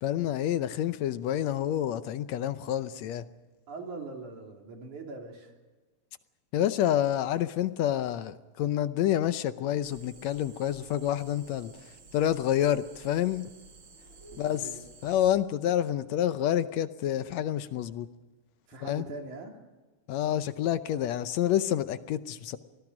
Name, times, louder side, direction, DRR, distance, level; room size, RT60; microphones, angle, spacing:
voice 1, 0.0-3.3 6.5-11.7 12.1-13.5 14.4-14.7 15.0-18.1 18.8-19.1 20.1-22.6, left 11 dB, 75° left, 12 dB, 1.9 m, -28 dB
voice 2, 3.7-5.5 14.3-14.8 18.7-19.5, right 3 dB, 85° right, 2 dB, 4.7 m, -41 dB
sound 1, 9.8-15.4, right 3 dB, 40° right, 4.7 m, -53 dB
24.5 x 19.0 x 6.3 m, 1.2 s
omnidirectional pair, 3.4 m